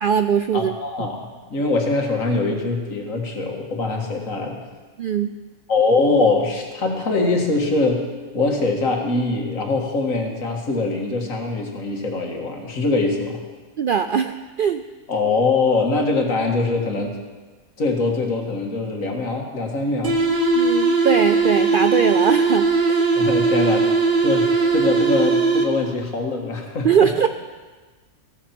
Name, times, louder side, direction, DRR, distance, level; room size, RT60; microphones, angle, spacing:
voice 1, 0.0-0.7 1.0-1.1 5.0-5.4 13.8-14.8 20.5-23.1 26.8-27.3, right 7 dB, 75° right, 9 dB, 0.5 m, -21 dB
voice 2, 0.5-4.6 5.7-8.1 8.3-13.4 15.1-17.2 17.8-20.2 23.1-27.1, left 3 dB, 70° left, 2 dB, 2.2 m, -23 dB
sound 1, 20.0-26.0, right 3 dB, 40° right, 1.4 m, -19 dB
16.0 x 13.5 x 4.5 m, 1.3 s
omnidirectional pair, 1.4 m